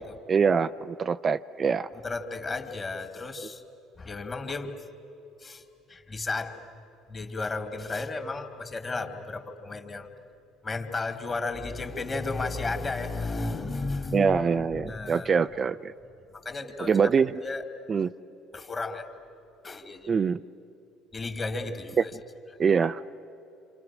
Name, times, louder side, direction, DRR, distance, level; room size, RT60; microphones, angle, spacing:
voice 1, 0.3-1.9 14.1-15.9 16.8-17.4 17.9-18.1 20.1-20.4 22.0-22.1 22.6-23.1, right 6 dB, 40° right, 10 dB, 0.5 m, -24 dB
voice 2, 1.9-3.6 4.0-4.7 5.4-5.6 5.9-6.6 7.1-10.1 10.6-15.3 16.3-16.9 17.4-17.6 18.5-19.1 19.6-20.2 21.1-22.1 22.5-22.6, left 3 dB, 30° left, 5 dB, 2.7 m, -33 dB
28.5 x 27.5 x 6.2 m, 3.0 s
hypercardioid pair, 65°, 0 cm